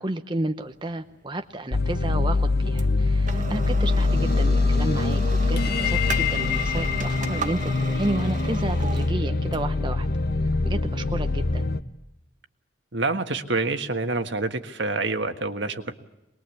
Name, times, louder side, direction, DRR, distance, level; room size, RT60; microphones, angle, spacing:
voice 1, 0.0-10.1 10.6-11.7, right 1 dB, 25° right, 7 dB, 0.8 m, -31 dB
sound 1, 0.6-11.8, right 4 dB, 40° right, 1.3 m, -36 dB
sound 2, 1.7-11.8, left 3 dB, 55° left, 0.9 m, -24 dB
voice 2, 12.9-15.9, right 3 dB, 70° right, 7 dB, 1.6 m, -27 dB
25.0 x 21.0 x 8.5 m, 0.95 s
head